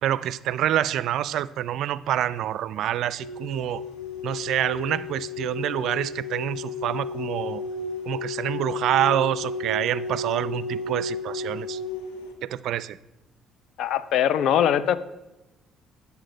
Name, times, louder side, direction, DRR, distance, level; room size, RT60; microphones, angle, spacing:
voice 1, 0.0-3.8 4.2-7.6 8.1-11.8 12.5-13.0, right 12 dB, 70° right, 18 dB, 0.4 m, -27 dB
sound 1, 3.2-12.3, left 4 dB, 90° left, 1.5 m, -33 dB
voice 2, 13.8-15.0, left 9 dB, 70° left, 16 dB, 0.5 m, -21 dB
9.5 x 7.0 x 5.1 m, 0.99 s
supercardioid pair, 70°, 0 cm